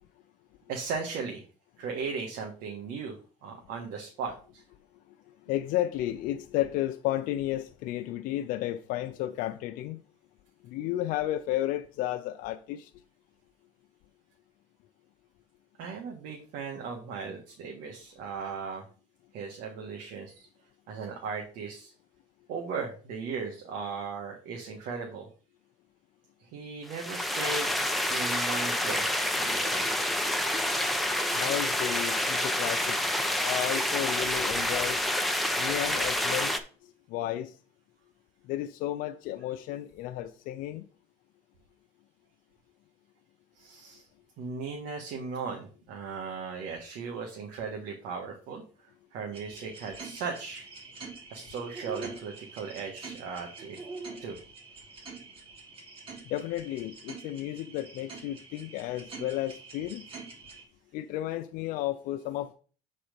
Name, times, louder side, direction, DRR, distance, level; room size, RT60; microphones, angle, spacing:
voice 1, 0.7-1.4 1.8-3.2 3.4-4.6 15.8-18.8 19.3-20.5 20.9-21.9 22.5-25.3 26.5-27.7 28.1-29.1 29.4-29.9 43.5-44.1 44.4-48.6 49.1-50.7 51.3-53.8 54.2-54.4, right 5 dB, 75° right, 1.6 m, -37 dB
voice 2, 5.5-10.0 10.6-12.9 31.3-33.0 33.4-35.0 35.6-36.5 37.1-37.5 38.5-40.8 56.3-60.0 60.9-62.5, left 13 dB, 75° left, 0.6 m, -32 dB
sound 1, 26.9-36.6, left 1 dB, ahead, 1.0 m, -28 dB
sound 2, 49.3-60.6, right 4 dB, 40° right, 3.0 m, -45 dB
7.8 x 4.3 x 5.2 m
cardioid pair, 110°, 14 cm